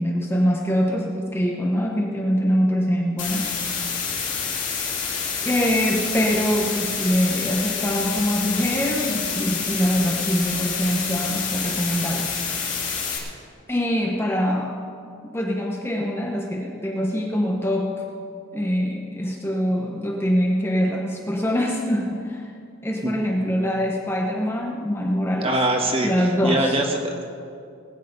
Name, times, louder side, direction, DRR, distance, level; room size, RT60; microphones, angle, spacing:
voice 1, 0.0-3.5 5.4-12.4 13.7-14.8 15.2-17.9 18.5-22.5 22.8-25.5 26.0-26.7, equal, 10° left, 0 dB, 1.0 m, -24 dB
sound 1, 3.2-13.2, left 6 dB, 40° left, 2.5 m, -28 dB
voice 2, 25.4-27.2, right 1 dB, 30° right, 2 dB, 1.6 m, -23 dB
20.0 x 9.3 x 5.4 m, 2.4 s
head